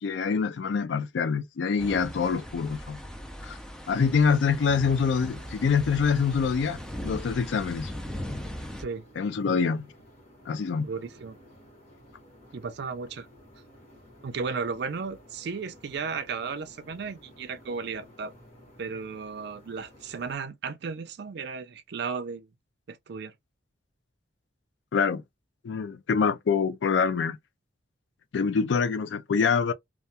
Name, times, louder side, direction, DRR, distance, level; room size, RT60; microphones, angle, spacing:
voice 1, 0.0-3.0 3.4-3.6 3.9-7.9 9.2-9.8 10.5-10.9 24.9-25.2 25.6-27.4 28.3-29.7, left 5 dB, 75° left, 0.4 m, -25 dB
sound 1, 1.8-8.8, equal, 5° left, 0.4 m, -39 dB
sound 2, 4.5-20.3, equal, 40° left, 1.2 m, -54 dB
voice 2, 10.8-11.4 12.5-13.3 14.2-18.3 18.8-22.5 22.9-23.3, right 5 dB, 60° right, 0.4 m, -34 dB
2.3 x 2.2 x 2.8 m
head